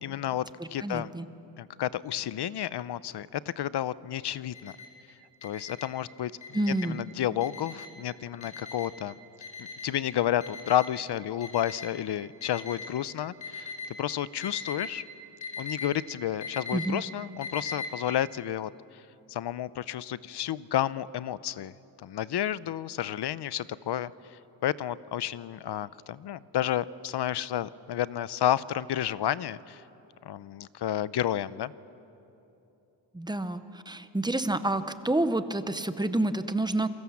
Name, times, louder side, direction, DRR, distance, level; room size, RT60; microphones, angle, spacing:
voice 1, 0.0-1.1 1.6-4.7 5.4-6.3 6.7-9.2 9.6-15.0 15.6-18.7 19.3-21.7 22.0-29.8 30.2-31.7, left 11 dB, 60° left, 18 dB, 0.6 m, -31 dB
voice 2, 0.6-1.3 6.5-7.0 16.7-17.0 33.1-36.9, right 2 dB, 10° right, 11 dB, 0.6 m, -29 dB
Alarm, 4.5-4.9 5.4-5.9 6.4-6.9 7.4-7.9 8.4-8.9 9.4-9.9 10.4-10.9 11.4-11.9 12.4-12.9 13.4-13.9 14.4-14.9 15.4-15.9 16.4-16.9 17.4-17.9, left 5 dB, 35° left, 4.8 m, -39 dB
28.0 x 23.5 x 7.2 m, 2.9 s
wide cardioid pair, 180°, 45 cm